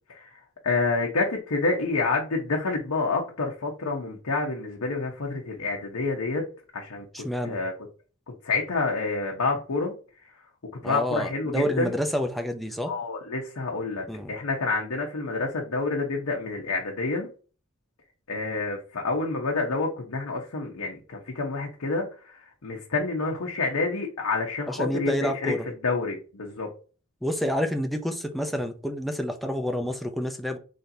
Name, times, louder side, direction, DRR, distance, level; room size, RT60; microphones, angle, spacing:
voice 1, 0.1-6.4 6.7-7.7 8.4-9.9 10.8-11.9 12.9-17.3 18.3-25.5 25.8-26.7, left 3 dB, 90° left, 0.8 m, -28 dB
voice 2, 7.1-7.6 10.8-12.9 14.1-14.3 24.7-25.7 27.2-30.6, equal, ahead, 0.5 m, -28 dB
4.0 x 3.3 x 2.6 m
head